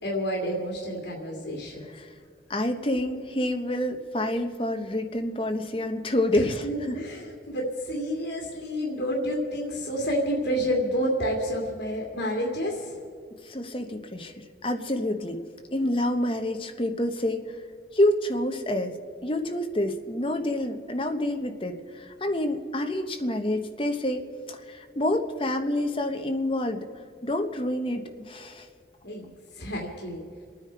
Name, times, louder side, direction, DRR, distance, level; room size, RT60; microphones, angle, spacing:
voice 1, 0.0-1.8 6.3-12.9 29.0-30.2, equal, 75° left, -2 dB, 2.5 m, -29 dB
voice 2, 2.5-7.0 13.4-15.4 15.7-17.4 17.9-18.9 19.2-26.9 27.2-28.7, left 1 dB, 30° left, 5 dB, 1.0 m, -28 dB
28.0 x 9.7 x 4.7 m, 2.2 s
head